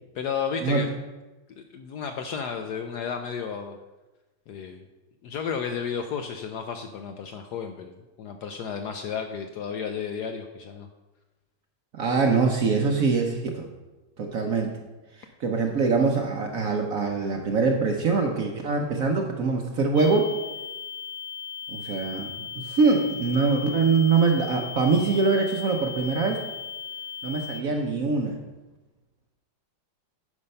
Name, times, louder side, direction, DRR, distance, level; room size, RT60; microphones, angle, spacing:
voice 1, 0.1-0.9 1.7-3.8 4.5-4.8 5.2-10.9, left 6 dB, 70° left, 6 dB, 1.0 m, -32 dB
voice 2, 11.9-13.7 14.2-14.8 15.4-20.3 21.7-22.3 22.6-26.4 27.2-28.4, right 4 dB, 60° right, 3 dB, 1.0 m, -23 dB
sound 1, 19.9-27.6, left 7 dB, 45° left, 0.8 m, -37 dB
9.7 x 5.3 x 5.4 m, 1.1 s
omnidirectional pair, 2.2 m